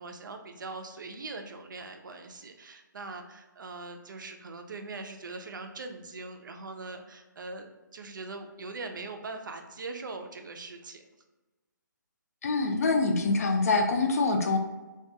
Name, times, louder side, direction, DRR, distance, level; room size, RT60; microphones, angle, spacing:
voice 1, 0.0-11.0, right 3 dB, 70° right, 5 dB, 0.4 m, -41 dB
voice 2, 12.4-14.6, left 3 dB, 50° left, 4 dB, 0.4 m, -25 dB
2.3 x 2.3 x 2.7 m, 1.2 s
hypercardioid pair, 155°, 11 cm